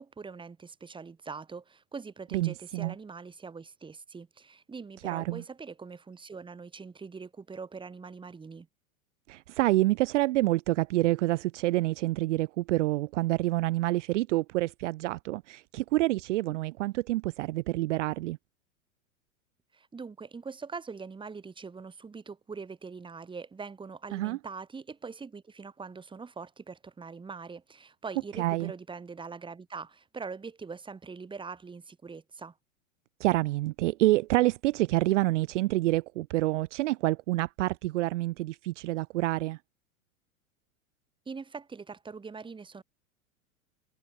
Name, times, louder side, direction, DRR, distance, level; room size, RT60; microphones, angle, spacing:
voice 1, 0.0-8.7 19.7-32.5 41.2-42.8, right 5 dB, 10° right, 1.7 m, -43 dB
voice 2, 2.3-2.9 5.0-5.4 9.3-18.4 24.1-24.4 28.4-28.7 33.2-39.6, right 18 dB, 60° right, 0.6 m, -27 dB
hypercardioid pair, 100°, 41 cm